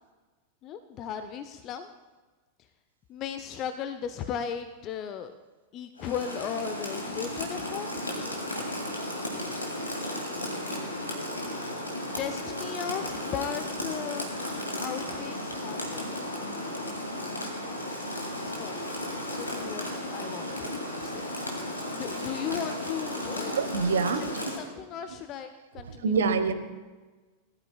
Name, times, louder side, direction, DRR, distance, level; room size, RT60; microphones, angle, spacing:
voice 1, 0.6-1.9 3.1-5.3 5.7-8.0 12.0-14.4 14.8-16.1 18.4-18.8 19.4-19.8 20.1-21.2 21.9-23.6 24.1-26.2, left 8 dB, 35° left, 9 dB, 0.6 m, -36 dB
Rain, 6.0-24.7, left 1 dB, 80° left, 2.4 m, -34 dB
voice 2, 23.5-24.5 26.0-26.5, right 5 dB, 65° right, 10 dB, 1.0 m, -26 dB
20.0 x 13.0 x 2.3 m, 1.3 s
figure-of-eight pair, 90°, 0 cm